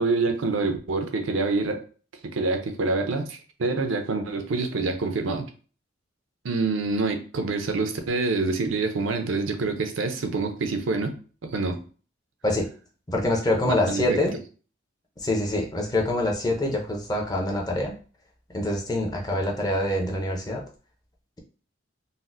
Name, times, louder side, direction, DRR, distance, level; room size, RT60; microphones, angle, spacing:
voice 1, 0.0-1.8 2.2-5.4 6.4-11.1 11.4-11.8 13.6-14.2, right 3 dB, 85° right, 6 dB, 0.5 m, -26 dB
voice 2, 13.1-14.3 15.2-17.9 18.5-20.6, left 1 dB, 20° left, 1 dB, 0.5 m, -25 dB
4.0 x 2.0 x 2.5 m, 0.38 s
head